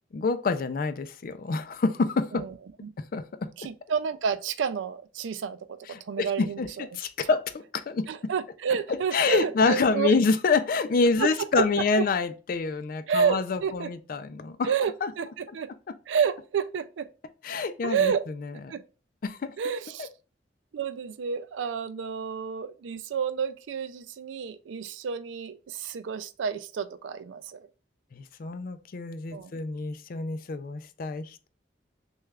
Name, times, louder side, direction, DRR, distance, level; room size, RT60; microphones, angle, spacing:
voice 1, 0.1-2.4 3.1-3.5 5.9-6.7 6.9-8.1 9.1-14.7 15.0-15.1 17.4-18.1 19.2-19.6 28.1-31.5, left 4 dB, 50° left, 0.4 m, -27 dB
voice 2, 3.6-6.9 8.1-10.1 11.2-11.3 11.6-11.7 11.9-12.1 13.1-13.9 14.6-15.7 16.1-17.1 17.8-18.2 18.7-18.8 19.6-20.1 20.7-27.7 29.3-29.5, right 7 dB, 85° right, 0.4 m, -30 dB
6.1 x 2.3 x 2.3 m
head